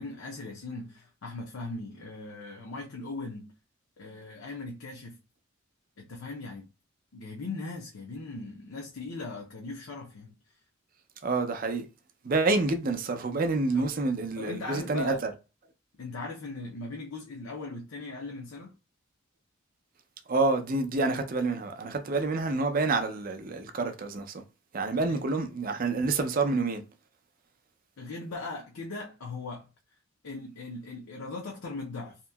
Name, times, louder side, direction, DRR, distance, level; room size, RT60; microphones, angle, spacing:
voice 1, 0.0-3.5 4.0-5.2 6.0-6.7 7.1-10.3 13.7-13.9 14.4-15.2 16.0-18.7 25.1-25.2 28.0-29.7 30.2-32.2, left 3 dB, 70° left, 0.6 m, -39 dB
voice 2, 11.2-11.9 12.2-15.3 20.3-24.4 24.7-26.8, right 3 dB, 40° right, 0.4 m, -28 dB
2.9 x 2.7 x 2.2 m
head